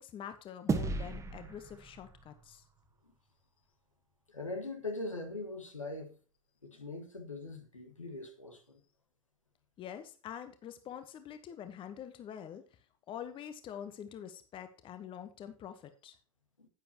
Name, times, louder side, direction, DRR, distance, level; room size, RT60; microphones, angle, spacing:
voice 1, 0.0-2.6 9.8-12.6 13.1-16.1, left 9 dB, 30° left, 1.1 m, -46 dB
sound 1, 0.7-3.3, right 4 dB, 20° right, 1.5 m, -37 dB
voice 2, 4.3-6.2 6.6-8.8 16.6-16.7, left 2 dB, 90° left, 1.9 m, -41 dB
10.0 x 9.2 x 3.0 m
figure-of-eight pair, 85°, 16 cm